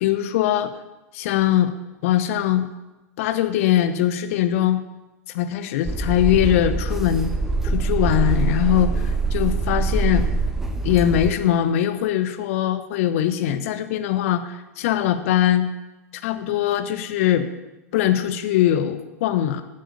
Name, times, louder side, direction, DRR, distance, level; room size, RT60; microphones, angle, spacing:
voice 1, 0.0-0.7 1.1-1.7 2.0-2.7 3.2-4.8 5.3-7.4 7.6-10.3 10.8-15.7 16.2-17.5 17.9-19.6, left 11 dB, 55° left, 10 dB, 1.0 m, -21 dB
sound 1, 5.8-11.3, right 3 dB, 5° right, 1.3 m, -23 dB
11.0 x 7.7 x 6.8 m, 1.0 s
figure-of-eight pair, 95°, 9 cm